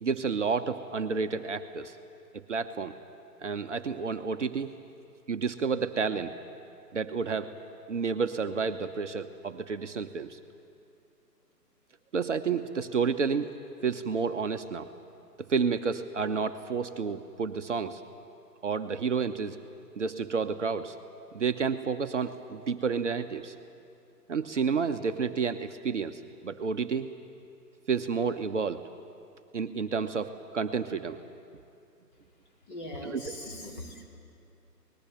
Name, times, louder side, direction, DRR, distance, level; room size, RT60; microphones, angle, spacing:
voice 1, 0.0-2.0 2.5-2.9 3.4-4.7 5.3-6.4 6.9-7.5 7.9-10.4 12.1-13.5 13.8-14.9 15.5-18.0 18.6-19.6 20.0-21.0 21.3-23.5 24.3-27.1 27.9-28.8 29.5-31.2 33.0-33.3, right 5 dB, 45° right, 7 dB, 0.8 m, -30 dB
voice 2, 32.7-34.2, left 1 dB, 30° left, -1 dB, 3.5 m, -40 dB
25.0 x 20.0 x 7.7 m, 2.6 s
figure-of-eight pair, 140°, 49 cm